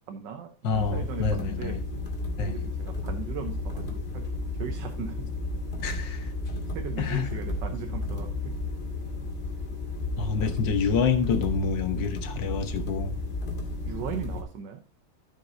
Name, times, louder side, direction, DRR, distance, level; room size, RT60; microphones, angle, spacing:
voice 1, 0.1-1.8 2.4-5.3 6.7-8.6 10.4-10.6 13.9-14.8, right 7 dB, 80° right, 1.6 m, -38 dB
voice 2, 0.6-1.8 2.4-2.6 5.8-6.2 7.0-7.3 10.2-13.2, left 5 dB, 85° left, 1.8 m, -27 dB
sound 1, 0.7-14.4, left 2 dB, 35° left, 2.5 m, -33 dB
14.5 x 6.1 x 2.7 m
omnidirectional pair, 1.9 m